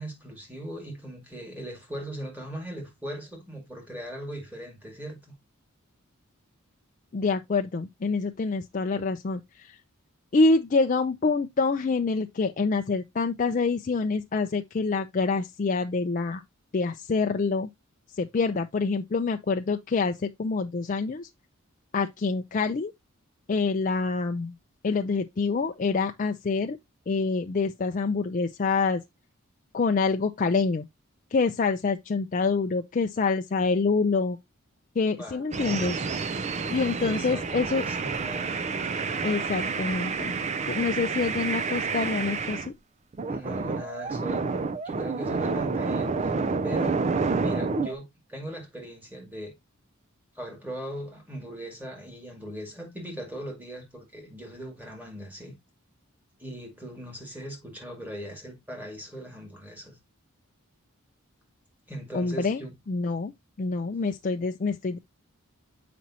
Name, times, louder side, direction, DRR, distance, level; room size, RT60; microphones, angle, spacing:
voice 1, 0.0-5.3 35.2-35.4 37.0-38.6 43.3-44.5 44.8-46.3 46.6-47.0 47.3-49.5 50.3-55.5 56.4-60.0 61.9-62.7, right 1 dB, 10° right, 2.2 m, -39 dB
voice 2, 7.1-9.8 10.3-16.4 16.7-17.7 18.1-21.3 21.9-22.9 23.5-24.5 24.8-26.8 27.1-29.0 29.7-30.9 31.3-34.4 35.0-36.0 36.7-37.8 39.2-40.3 40.7-42.7 62.1-62.6 62.9-63.3 63.6-65.0, left 4 dB, 35° left, 0.4 m, -26 dB
sound 1, 35.5-42.7 43.1-47.9, right 4 dB, 30° right, 0.4 m, -29 dB
7.3 x 5.1 x 2.8 m
head